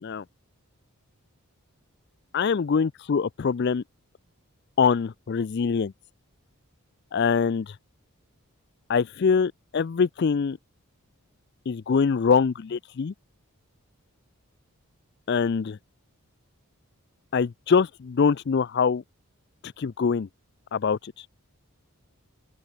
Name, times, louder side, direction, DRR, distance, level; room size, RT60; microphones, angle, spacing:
voice 1, 2.3-3.8 4.8-5.9 7.1-7.8 8.9-10.6 11.7-13.1 15.3-15.8 17.3-19.0 19.8-20.3 20.7-21.3, left 5 dB, 50° left, 0.4 m, -24 dB
open air
head